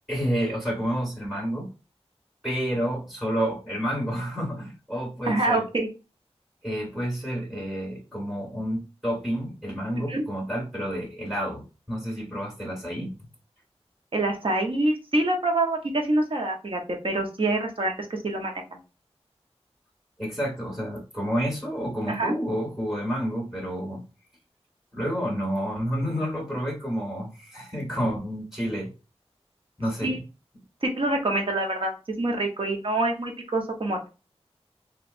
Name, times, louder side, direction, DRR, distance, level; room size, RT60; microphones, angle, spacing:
voice 1, 0.1-1.7 2.4-5.6 6.6-13.1 20.2-24.0 24.9-28.9 29.8-30.2, equal, 5° right, -2 dB, 1.8 m, -29 dB
voice 2, 5.2-5.9 9.9-10.2 14.1-18.5 22.1-22.3 30.0-30.2 30.8-34.1, right 2 dB, 55° right, 2 dB, 1.0 m, -26 dB
3.2 x 3.1 x 2.6 m, 0.30 s
wide cardioid pair, 60°, 11 cm